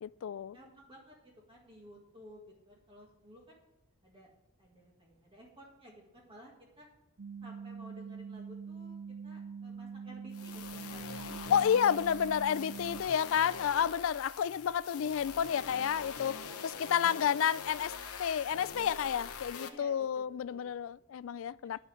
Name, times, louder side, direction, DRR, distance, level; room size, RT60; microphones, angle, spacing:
voice 1, 0.0-0.6 11.5-21.8, left 8 dB, 60° left, 0.3 m, -30 dB
voice 2, 0.5-3.6 4.0-4.3 4.6-6.9 7.4-9.0 9.2-11.6 19.7-21.0, equal, 25° right, 1.9 m, -55 dB
sound 1, 7.2-13.0, right 5 dB, 45° right, 0.5 m, -44 dB
sound 2, 10.3-19.7, left 5 dB, 85° left, 1.0 m, -44 dB
11.0 x 6.0 x 8.2 m
head